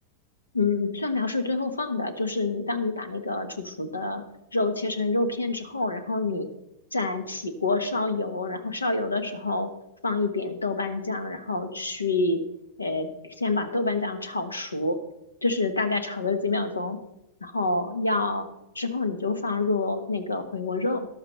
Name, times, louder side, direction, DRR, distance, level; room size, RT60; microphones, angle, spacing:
voice 1, 0.5-4.2 4.5-6.5 6.9-9.7 10.0-12.4 12.8-15.0 15.4-17.0 17.4-18.5 18.7-21.1, left 3 dB, 80° left, 10 dB, 1.2 m, -27 dB
13.5 x 11.5 x 3.2 m, 0.87 s
figure-of-eight pair, 90°, 0 cm